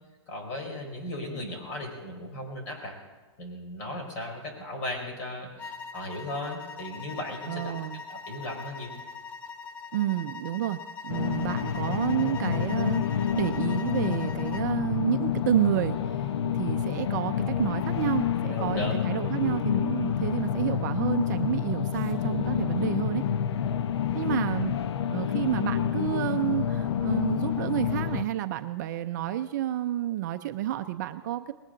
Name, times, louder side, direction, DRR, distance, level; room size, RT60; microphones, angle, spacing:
voice 1, 0.3-2.9 3.4-8.9 18.5-19.0, left 1 dB, 35° left, 1 dB, 4.8 m, -36 dB
sound 1, 5.6-14.7, left 5 dB, 10° left, 0.4 m, -42 dB
voice 2, 7.5-8.0 9.9-16.3 16.5-23.3 24.1-24.7 25.1-31.5, right 13 dB, 40° right, 9 dB, 0.6 m, -30 dB
sound 2, 11.1-28.2, left 9 dB, 65° left, 0.8 m, -28 dB
20.0 x 18.0 x 3.9 m, 1.2 s
hypercardioid pair, 160°, 15 cm